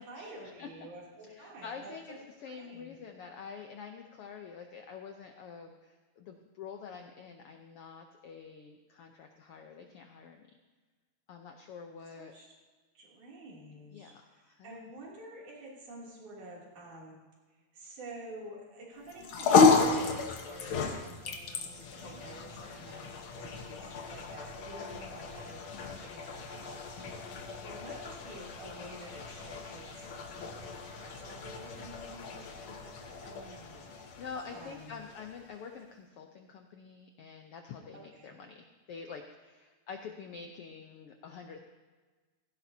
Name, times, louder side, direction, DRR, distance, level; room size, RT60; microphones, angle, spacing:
voice 1, 0.0-3.0 12.2-12.5 12.9-17.2 17.7-34.2 34.5-35.0 37.9-38.4, right 1 dB, 75° right, -4 dB, 4.3 m, -50 dB
voice 2, 1.3-10.5 11.3-12.3 13.9-14.9 25.7-26.0 33.9-41.6, left 6 dB, 75° left, 4 dB, 1.3 m, -47 dB
sound 1, 19.1-35.6, left 4 dB, 60° left, 1.5 m, -32 dB
16.5 x 16.0 x 2.8 m, 1.3 s
omnidirectional pair, 3.5 m